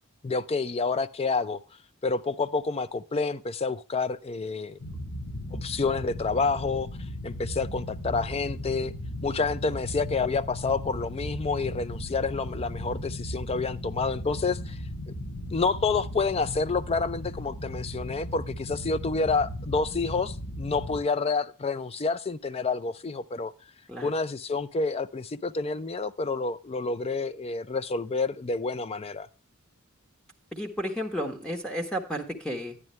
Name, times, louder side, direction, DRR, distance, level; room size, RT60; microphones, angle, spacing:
voice 1, 0.2-1.6 2.0-4.8 5.5-6.9 7.2-8.9 9.2-14.8 15.1-15.2 15.5-23.5 24.0-29.3, left 4 dB, 30° left, 0.4 m, -28 dB
sound 1, 4.8-21.0, left 1 dB, 70° left, 2.1 m, -37 dB
voice 2, 30.5-32.8, equal, 5° left, 1.3 m, -32 dB
10.5 x 9.8 x 3.2 m
head